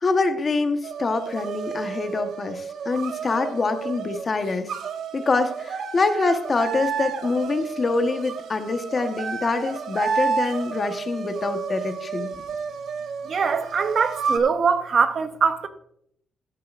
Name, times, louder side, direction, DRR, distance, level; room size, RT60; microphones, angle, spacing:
voice 1, 0.0-4.7 5.1-12.3, left 3 dB, 35° left, 1.2 m, -25 dB
sound 1, 0.8-14.4, right 6 dB, 70° right, 1.0 m, -31 dB
voice 2, 13.2-15.7, right 5 dB, 50° right, 0.8 m, -22 dB
15.0 x 9.3 x 2.5 m
cardioid pair, 90°, 0 cm